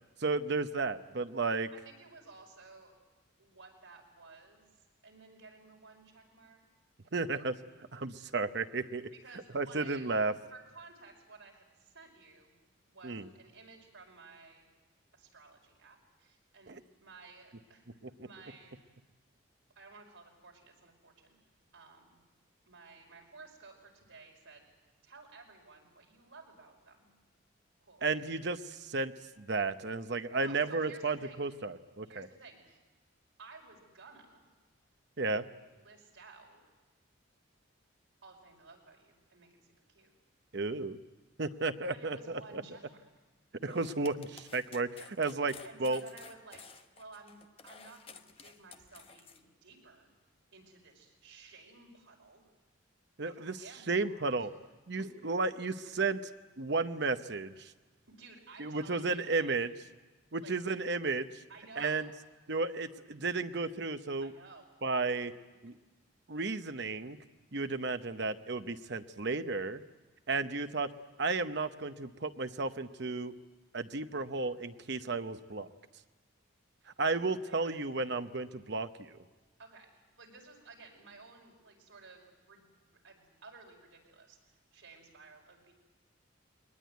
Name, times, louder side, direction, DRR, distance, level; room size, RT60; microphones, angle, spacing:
voice 1, 0.2-1.7 7.1-7.6 7.9-9.1 9.5-10.3 13.0-13.3 16.7-16.8 18.0-18.1 28.0-32.3 35.2-35.5 40.5-41.0 41.4-42.6 43.6-45.5 45.8-46.0 53.2-54.5 54.9-56.2 56.6-57.7 58.6-59.7 60.3-61.4 61.8-62.1 62.5-64.3 64.8-65.3 65.6-65.8 66.3-67.2 67.5-69.8 70.3-70.9 71.2-73.4 73.7-75.7 77.0-79.1, right 3 dB, 55° right, 10 dB, 0.9 m, -33 dB
voice 2, 1.7-3.0 3.4-6.6 9.1-10.1 10.5-12.5 12.9-14.7 15.1-19.0 19.8-21.4 21.7-22.2 22.7-24.7 25.0-27.1 27.8-28.2 30.3-31.4 32.0-32.8 33.4-34.4 35.7-36.6 38.2-40.1 41.9-43.0 45.6-46.6 47.0-50.1 50.5-52.5 53.2-54.2 55.0-55.1 58.1-59.6 60.4-60.5 61.5-62.0 64.2-64.7 77.1-77.8 79.6-79.9 80.2-85.7, right 3 dB, 80° right, 0 dB, 5.4 m, -55 dB
sound 1, 43.6-49.4, left 5 dB, 25° left, 1.0 m, -53 dB
21.5 x 20.0 x 9.3 m, 1.2 s
head